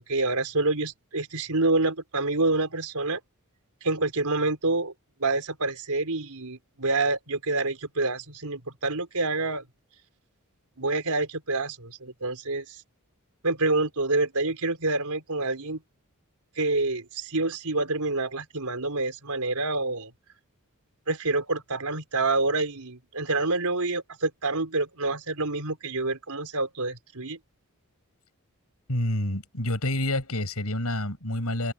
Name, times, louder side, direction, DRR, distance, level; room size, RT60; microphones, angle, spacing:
voice 1, 0.0-3.2 3.8-4.9 5.2-9.6 10.8-12.6 13.4-15.8 16.6-20.1 21.1-27.4, right 2 dB, 90° right, 4.2 m, -27 dB
voice 2, 28.9-31.7, left 1 dB, 80° left, 6.6 m, -28 dB
open air
head